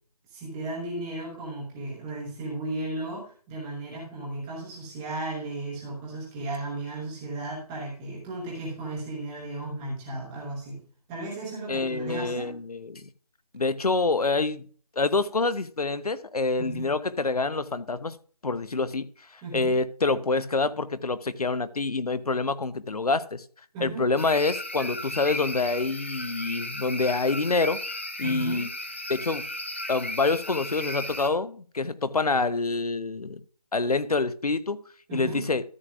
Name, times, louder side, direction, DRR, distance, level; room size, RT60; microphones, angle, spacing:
voice 1, 0.3-10.8 11.1-12.5 16.6-16.9 19.4-19.8 23.7-24.0 28.2-28.6 35.1-35.5, right 2 dB, 5° right, 0.9 m, -35 dB
voice 2, 11.7-13.1 13.5-14.6 15.0-18.2 18.4-23.4 23.8-28.7 29.1-29.5 29.9-33.4 33.7-34.8 35.1-35.6, left 3 dB, 70° left, 0.8 m, -27 dB
sound 1, 24.2-31.3, left 1 dB, 20° left, 0.6 m, -35 dB
13.5 x 8.2 x 2.4 m
figure-of-eight pair, 165°, 20 cm